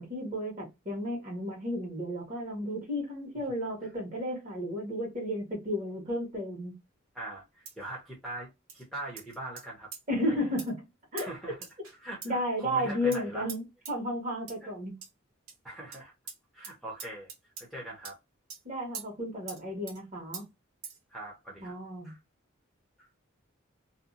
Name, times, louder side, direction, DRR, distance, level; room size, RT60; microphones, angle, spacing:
voice 1, 0.0-6.7 10.1-10.8 11.1-11.3 12.2-14.9 18.6-20.4 21.6-22.1, equal, 35° right, 1.4 m, -33 dB
voice 2, 7.1-9.9 10.3-10.5 11.2-11.7 12.0-13.5 14.6-14.7 15.6-16.1 16.5-17.3 17.6-18.2 21.1-21.7 22.0-22.2 23.0-23.1, right 1 dB, ahead, 0.8 m, -42 dB
sound 1, 7.7-7.9 8.7-8.8 9.2-9.7 9.9-10.0 10.6-10.7 11.2-11.3 11.6-12.0 12.2-12.3 13.1-13.2 13.5-13.6 13.8-13.9 14.5-14.6 15.0-15.1 15.5-15.6 15.9-16.0 16.3-16.4 16.6-16.7 17.0-17.7 18.0-18.1 18.5-18.6 18.9-19.1 19.5-19.6 19.9-20.0 20.3-20.4 20.8-21.0, right 6 dB, 90° right, 1.1 m, -42 dB
2.7 x 2.3 x 2.4 m
head